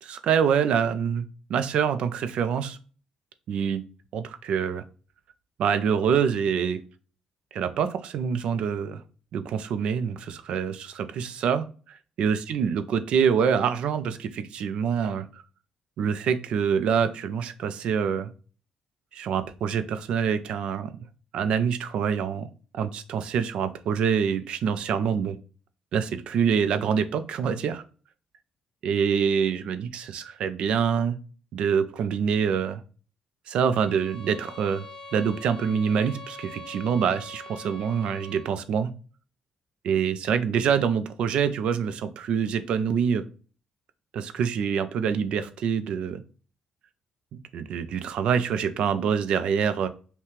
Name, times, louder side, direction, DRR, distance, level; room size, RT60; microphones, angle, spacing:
voice 1, 0.0-2.8 3.5-3.8 4.1-4.8 5.6-6.8 7.5-9.0 9.3-11.6 12.2-15.4 16.0-18.3 19.1-21.0 21.3-22.5 22.7-25.4 25.9-27.8 28.8-31.2 31.5-32.8 33.5-34.8 35.1-38.9 39.8-43.2 44.1-46.2 47.3-49.9, right 7 dB, 60° right, 11 dB, 0.5 m, -25 dB
sound 1, 33.8-38.6, left 1 dB, 40° left, 1.4 m, -43 dB
5.7 x 2.2 x 3.2 m, 0.38 s
cardioid pair, 175°, 2 cm